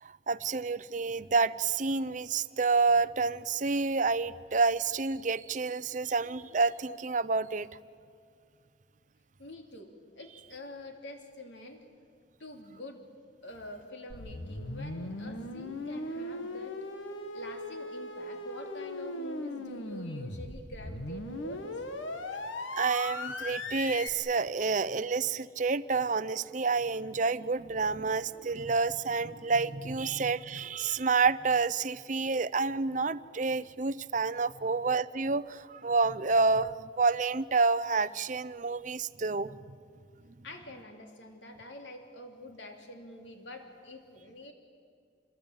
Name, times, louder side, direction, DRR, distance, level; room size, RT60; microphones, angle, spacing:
voice 1, 0.0-7.7 22.7-39.8, right 4 dB, 40° right, 16 dB, 0.6 m, -29 dB
voice 2, 9.4-11.9 12.4-13.0 13.4-16.8 17.3-21.8 30.0-30.1 40.4-44.5, left 1 dB, 70° left, 4 dB, 3.1 m, -46 dB
sound 1, 14.1-24.1, left 2 dB, 90° left, 1.9 m, -38 dB
27.0 x 21.5 x 8.9 m, 2.3 s
head